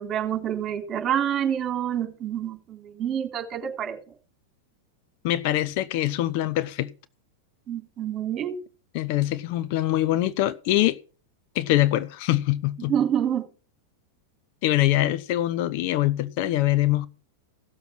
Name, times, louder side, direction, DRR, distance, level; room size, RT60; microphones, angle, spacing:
voice 1, 0.0-4.0 7.7-8.6 12.9-13.4, right 9 dB, 30° right, 3.4 m, -27 dB
voice 2, 5.2-6.9 8.9-11.0 11.5-12.9 14.6-17.1, left 15 dB, 50° left, 0.8 m, -23 dB
16.5 x 7.1 x 6.1 m
figure-of-eight pair, 95°, 0 cm